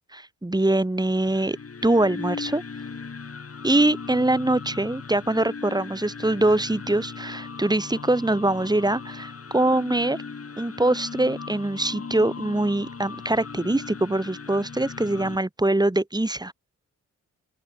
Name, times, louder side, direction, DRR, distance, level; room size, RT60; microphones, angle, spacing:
voice 1, 0.1-1.6 1.8-2.6 3.6-10.2 10.6-16.5, right 1 dB, 10° right, 2.3 m, -23 dB
sound 1, 1.1-15.4, left 5 dB, 45° left, 5.3 m, -38 dB
open air
cardioid pair, 60°, 32 cm